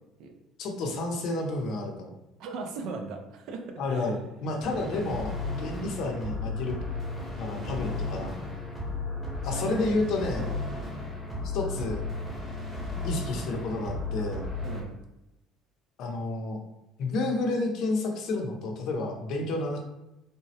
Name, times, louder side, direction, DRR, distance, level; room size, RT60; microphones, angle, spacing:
voice 1, 0.6-2.1 3.8-6.8 7.4-8.3 9.4-10.5 11.4-12.0 13.0-14.5 16.0-16.6 17.0-19.8, left 2 dB, 60° left, 2 dB, 0.6 m, -30 dB
voice 2, 2.4-4.1 7.5-8.0 9.5-10.0 10.4-10.6 14.6-14.9, right 4 dB, 65° right, 4 dB, 0.4 m, -38 dB
sound 1, 4.6-14.8, left 2 dB, 5° left, 0.7 m, -34 dB
3.4 x 2.0 x 2.7 m, 0.94 s
cardioid pair, 140°, 0 cm